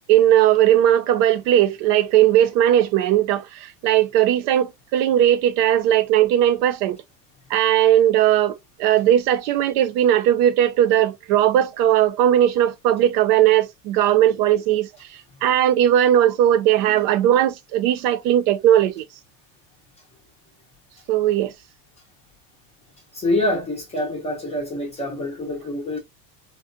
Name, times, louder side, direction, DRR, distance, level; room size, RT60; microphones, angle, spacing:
voice 1, 0.1-7.0 7.5-19.0 21.1-21.5, right 11 dB, 70° right, 0.7 m, -18 dB
voice 2, 23.1-26.0, left 1 dB, 15° left, 0.5 m, -25 dB
3.8 x 2.2 x 2.5 m
cardioid pair, 170°, 50 cm